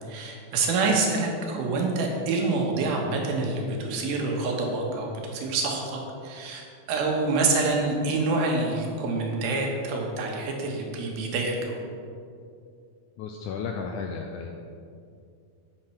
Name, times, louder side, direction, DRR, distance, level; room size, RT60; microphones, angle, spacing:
voice 1, 0.1-11.8, right 3 dB, 90° right, 0 dB, 3.3 m, -27 dB
voice 2, 13.2-14.5, left 5 dB, 85° left, 3 dB, 1.8 m, -33 dB
10.0 x 9.6 x 4.5 m, 2.4 s
omnidirectional pair, 4.2 m